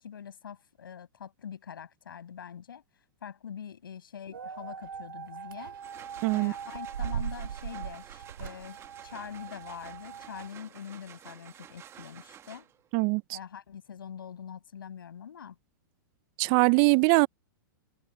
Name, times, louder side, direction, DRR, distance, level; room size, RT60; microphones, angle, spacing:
voice 1, 0.0-2.8 3.2-5.7 6.3-12.7 13.3-15.6, left 8 dB, 85° left, 7.0 m, -44 dB
sound 1, 4.3-10.5, right 8 dB, 85° right, 2.7 m, -39 dB
sound 2, 5.6-12.9, right 10 dB, 25° right, 1.8 m, -51 dB
voice 2, 6.2-6.5 12.9-13.4 16.4-17.3, right 28 dB, 40° right, 0.5 m, -22 dB
hypercardioid pair, 130°, 11 cm